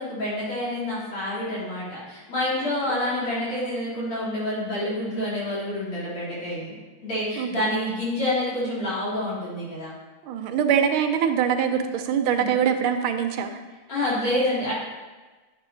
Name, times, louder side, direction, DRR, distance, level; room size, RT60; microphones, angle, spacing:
voice 1, 0.0-6.8 7.0-9.9 12.4-12.5 13.9-14.7, left 1 dB, 75° left, -10 dB, 3.6 m, -28 dB
voice 2, 10.2-13.6, right 8 dB, 80° right, 7 dB, 1.5 m, -23 dB
10.5 x 6.7 x 3.2 m, 1.3 s
omnidirectional pair, 2.3 m